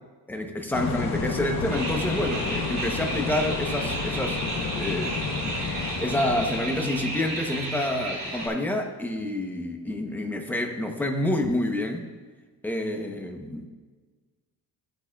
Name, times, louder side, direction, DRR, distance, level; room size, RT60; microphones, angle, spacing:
voice 1, 0.3-4.4 4.8-5.2 6.0-12.1 12.6-13.7, left 1 dB, 5° left, 3 dB, 0.7 m, -28 dB
sound 1, 0.7-7.4, left 4 dB, 45° left, 0.9 m, -31 dB
sound 2, 1.7-8.5, right 2 dB, 25° right, 2.5 m, -33 dB
14.5 x 8.3 x 2.3 m, 1.4 s
cardioid pair, 165°, 38 cm